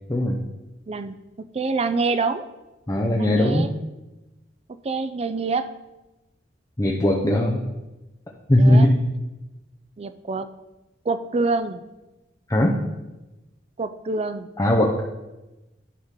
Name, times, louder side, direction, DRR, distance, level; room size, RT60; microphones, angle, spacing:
voice 1, 0.1-0.4 2.9-3.7 6.8-7.6 8.5-8.9 12.5-12.8 14.6-15.0, left 1 dB, 20° left, -1 dB, 0.7 m, -19 dB
voice 2, 0.9-2.5 3.2-3.7 4.8-5.7 8.6-8.9 10.0-10.5 11.0-11.8 13.8-14.5, right 3 dB, 35° right, 11 dB, 0.4 m, -26 dB
11.0 x 3.7 x 5.7 m, 1.0 s
head